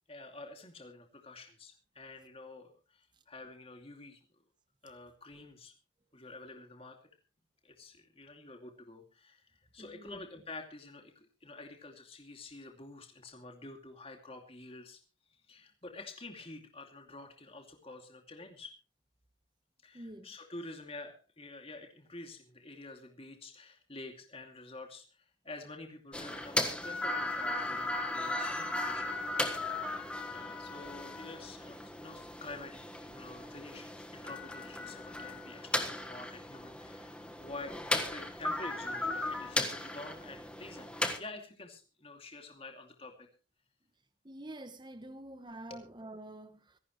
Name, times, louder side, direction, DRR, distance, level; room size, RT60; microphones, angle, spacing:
voice 1, 0.1-4.2 4.8-5.7 6.1-7.0 7.6-15.0 15.5-18.7 19.8-29.2 29.8-30.0 30.3-40.9 41.2-43.3 45.7-45.9, left 2 dB, 30° left, 2.5 m, -48 dB
voice 2, 9.8-10.2 19.9-20.3 44.2-46.8, right 1 dB, 20° right, 1.0 m, -47 dB
sound 1, 26.1-41.2, left 1 dB, 5° left, 1.4 m, -36 dB
25.5 x 11.0 x 3.1 m
head